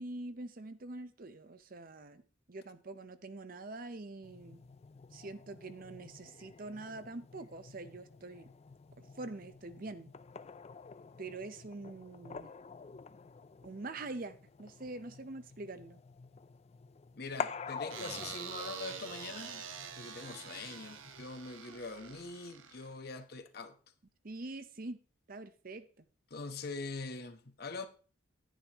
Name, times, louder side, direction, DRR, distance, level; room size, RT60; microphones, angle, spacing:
voice 1, 0.0-2.2 2.5-4.6 5.1-8.5 9.0-10.1 11.2-12.5 13.6-16.0 24.2-25.0 25.3-26.0, right 2 dB, 45° right, 0.7 m, -45 dB
sound 1, 4.2-21.3, left 5 dB, 30° left, 0.3 m, -48 dB
voice 2, 17.2-19.6 20.0-23.7 26.3-27.9, left 3 dB, 50° left, 1.0 m, -43 dB
sound 2, 17.9-23.2, right 7 dB, 90° right, 1.1 m, -46 dB
10.5 x 10.0 x 3.0 m
head